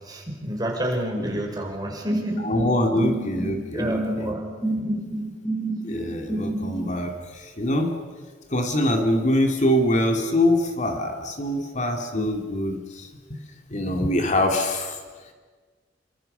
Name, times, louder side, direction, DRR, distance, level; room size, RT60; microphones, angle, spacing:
voice 1, 0.0-2.5 2.9-3.0 3.7-4.5 4.7-5.3 12.1-12.4, equal, 20° right, 1 dB, 5.4 m, -30 dB
sound 1, 2.1-6.9, right 2 dB, 5° left, 2.2 m, -29 dB
voice 2, 2.4-4.3 5.8-7.9 8.5-13.4 13.7-15.0, left 1 dB, 40° left, 4 dB, 2.5 m, -24 dB
28.5 x 25.0 x 6.8 m, 1.5 s
head